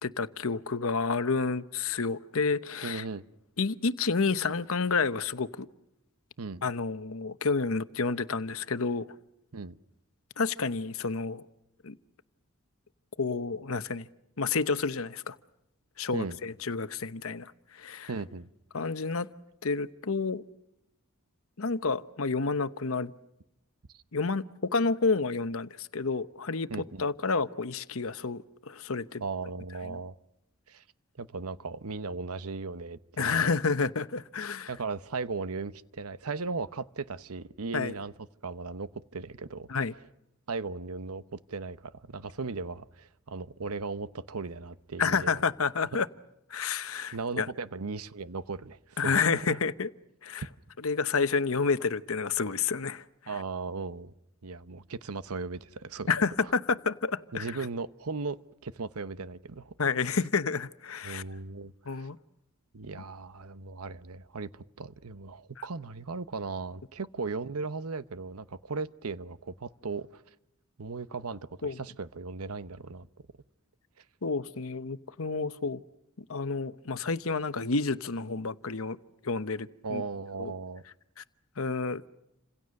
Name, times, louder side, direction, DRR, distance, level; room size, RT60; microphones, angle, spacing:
voice 1, 0.0-3.0 3.6-5.7 6.6-9.1 10.4-11.4 11.8-12.0 13.2-14.1 14.4-15.4 16.0-18.1 18.7-19.3 19.6-20.4 21.6-23.1 24.1-26.7 27.0-29.2 29.9-30.0 33.2-34.7 37.7-37.9 39.7-39.9 45.0-46.1 46.5-47.5 49.0-49.9 50.2-50.4 50.8-53.0 56.1-57.5 59.8-61.2 61.9-62.2 71.6-71.8 74.2-75.8 76.3-79.0 79.2-80.0 80.4-80.5 81.2-81.3 81.6-82.1, left 4 dB, 65° left, 0.9 m, -29 dB
voice 2, 2.8-3.2 6.4-6.6 9.5-9.8 16.1-16.4 18.1-18.5 26.7-27.1 29.2-30.1 30.7-30.8 31.2-33.5 34.7-38.1 38.4-39.7 40.5-45.4 45.9-46.0 47.1-49.6 53.3-54.1 54.4-56.1 56.4-56.5 57.3-58.4 58.6-59.7 61.0-62.1 62.7-70.2 70.8-73.1 74.0-74.1 79.8-80.8, right 4 dB, 75° right, 0.9 m, -37 dB
29.0 x 26.5 x 6.5 m
head